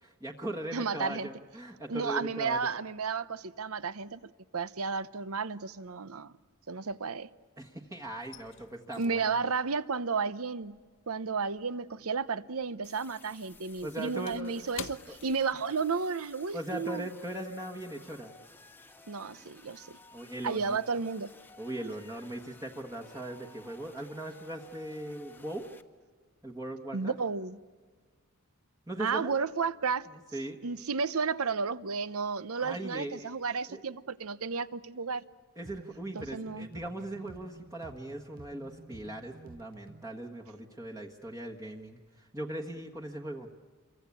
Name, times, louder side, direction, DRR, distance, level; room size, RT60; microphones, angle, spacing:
voice 1, 0.0-2.6 7.6-9.3 13.8-14.7 15.1-15.2 16.5-18.3 20.1-20.8 21.6-25.7 26.4-27.1 28.9-29.3 30.1-30.6 32.6-33.3 33.7-33.8 35.6-43.5, right 1 dB, 15° right, 1.4 m, -39 dB
voice 2, 0.7-1.3 1.9-6.3 6.7-7.3 9.0-10.8 11.1-17.1 19.1-20.0 20.4-21.3 26.9-27.6 29.0-30.1 30.6-35.2 36.1-36.7, right 5 dB, 70° right, 0.8 m, -32 dB
sound 1, 4.7-5.3 5.6-7.6 7.8-12.5 12.8-16.1 16.4-16.6 17.1-17.3, left 8 dB, 55° left, 0.9 m, -50 dB
sound 2, 12.8-25.8, left 3 dB, 10° left, 1.1 m, -56 dB
sound 3, 35.6-40.2, right 2 dB, 40° right, 0.9 m, -52 dB
28.0 x 24.0 x 8.4 m
head